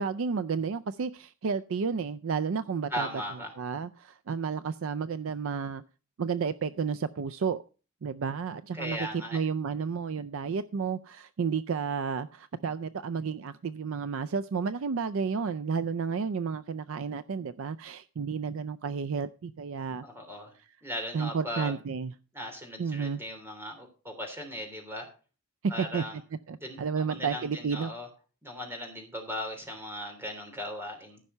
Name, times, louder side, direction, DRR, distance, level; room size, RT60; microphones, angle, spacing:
voice 1, 0.0-3.1 3.6-5.8 6.2-7.6 8.0-20.0 21.1-22.1 22.8-23.2 25.8-26.0 26.5-27.9, right 5 dB, 65° right, 13 dB, 0.4 m, -31 dB
voice 2, 2.9-3.5 8.7-9.4 20.0-20.5 20.8-21.8 22.3-25.1 25.7-26.2 26.6-28.1 28.4-31.2, left 1 dB, 10° right, 3 dB, 3.1 m, -38 dB
15.0 x 5.5 x 5.5 m, 0.36 s
head